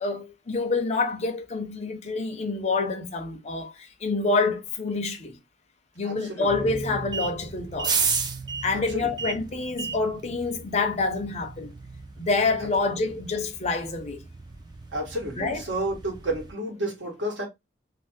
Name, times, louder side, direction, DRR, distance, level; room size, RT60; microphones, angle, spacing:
voice 1, 0.0-5.4 6.0-8.1 8.6-11.7 12.2-14.2 15.4-15.6, left 3 dB, 35° left, 0.5 m, -27 dB
voice 2, 6.0-6.5 8.9-9.1 14.9-17.4, right 1 dB, 85° right, 1.3 m, -31 dB
sound 1, 6.5-16.5, right 5 dB, 25° right, 0.4 m, -34 dB
2.7 x 2.0 x 3.4 m
head